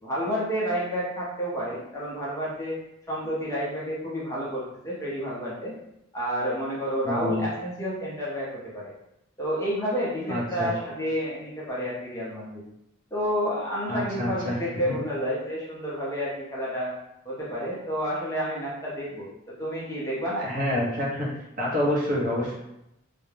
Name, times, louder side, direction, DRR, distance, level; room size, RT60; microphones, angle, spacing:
voice 1, 0.0-2.8 3.1-5.7 6.1-8.9 9.4-12.6 13.1-16.9 17.2-20.5, equal, 15° left, -6 dB, 0.5 m, -30 dB
voice 2, 7.0-7.5 10.3-10.7 13.9-14.6 14.9-15.0 20.4-21.3 21.6-22.5, left 1 dB, 40° right, -5 dB, 0.7 m, -27 dB
2.3 x 2.0 x 3.1 m, 0.85 s
head